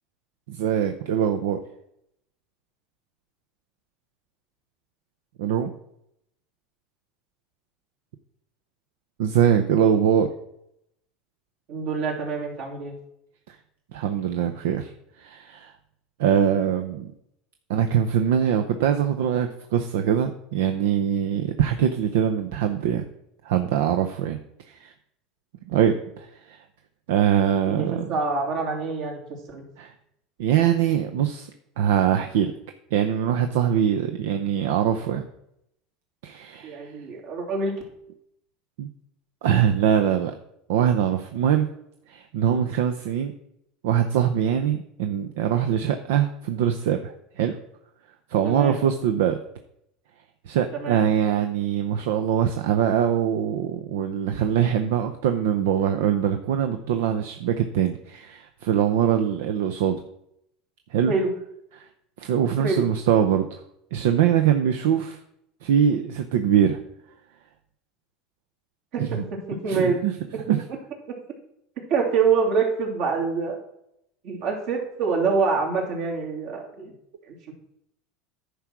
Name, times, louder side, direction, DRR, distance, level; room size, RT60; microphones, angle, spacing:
voice 1, 0.5-1.6 5.4-5.7 9.2-10.3 13.5-13.6 13.9-14.9 15.2-15.7 16.2-17.1 17.7-23.0 23.4-24.9 25.7-26.6 27.1-28.1 29.8-29.9 30.4-31.5 31.8-32.5 32.9-35.2 36.2-36.9 38.8-38.9 39.4-40.3 40.7-41.7 42.1-43.3 43.8-47.6 48.3-49.4 50.5-60.0 60.9-61.1 61.8-61.9 62.2-63.6 63.9-65.2 65.6-66.8 69.0-69.2 69.7-70.1 70.5-70.7, right 9 dB, 80° right, 7 dB, 0.7 m, -23 dB
voice 2, 11.7-12.9 27.7-29.2 29.5-29.6 36.6-37.7 48.4-48.8 50.7-51.0 61.1-61.3 62.6-62.9 68.9-69.0 69.3-70.0 71.9-73.6 74.2-76.9 77.3-77.5, right 4 dB, 65° right, -1 dB, 3.0 m, -25 dB
10.0 x 4.7 x 6.1 m, 0.78 s
supercardioid pair, 130°, 0 cm